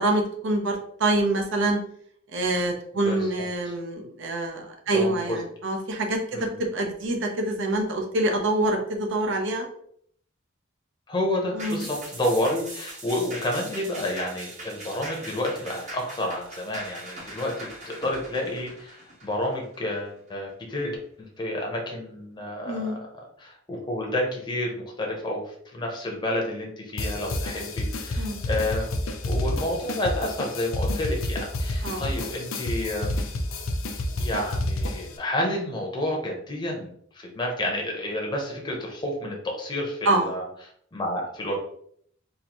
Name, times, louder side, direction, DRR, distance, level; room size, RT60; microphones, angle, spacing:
voice 1, 0.0-1.8 2.3-6.5 6.7-9.7 11.5-11.9 22.6-23.0 28.2-28.4 31.8-32.0 40.1-40.3, right 2 dB, 65° right, 3 dB, 0.8 m, -26 dB
voice 2, 4.9-5.4 6.3-6.6 11.1-21.0 21.4-23.0 23.4-33.2 34.2-40.5 40.9-41.6, left 1 dB, 20° left, 0 dB, 0.8 m, -30 dB
sound 1, 11.6-20.3 20.7-20.8, right 1 dB, 35° right, 1.0 m, -41 dB
sound 2, 27.0-35.2, left 1 dB, 85° left, 0.5 m, -29 dB
3.9 x 2.6 x 2.9 m, 0.65 s
head